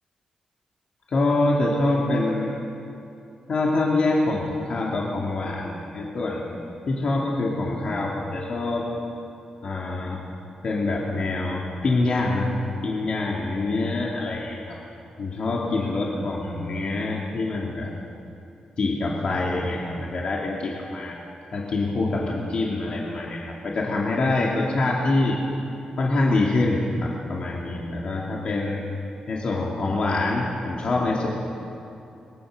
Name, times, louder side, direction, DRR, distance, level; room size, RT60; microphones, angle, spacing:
voice 1, 1.1-2.6 3.5-6.5 6.9-8.9 9.6-10.2 10.6-12.5 12.8-14.8 15.2-17.9 18.8-21.2 21.5-25.4 26.0-28.8 29.3-31.3, left 2 dB, 50° left, -3 dB, 2.9 m, -25 dB
23.5 x 22.0 x 6.8 m, 2.7 s
wide cardioid pair, 140°, 2 cm